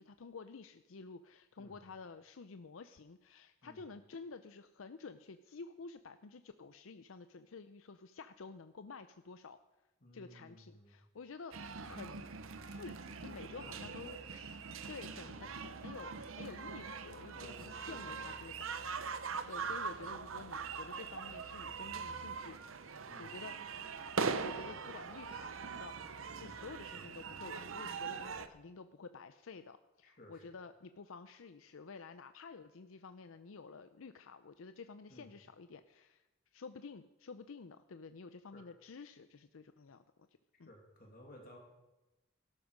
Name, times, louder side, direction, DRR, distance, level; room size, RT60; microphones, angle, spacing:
voice 1, 0.0-9.6 10.1-11.6 11.8-12.2 12.6-23.8 24.4-36.2 36.5-40.3 40.6-40.7, left 4 dB, 80° left, 10 dB, 0.6 m, -51 dB
voice 2, 10.0-11.0 11.9-12.0 13.6-13.8 15.2-15.4 17.3-18.4 19.6-19.8 23.1-23.3 26.4-26.6 30.0-30.6 35.1-35.3 38.5-38.7 40.6-41.6, equal, 45° left, 1 dB, 2.6 m, -56 dB
sound 1, 11.5-28.5, right 5 dB, 80° right, 0.8 m, -42 dB
17.0 x 12.5 x 5.2 m, 1.0 s
head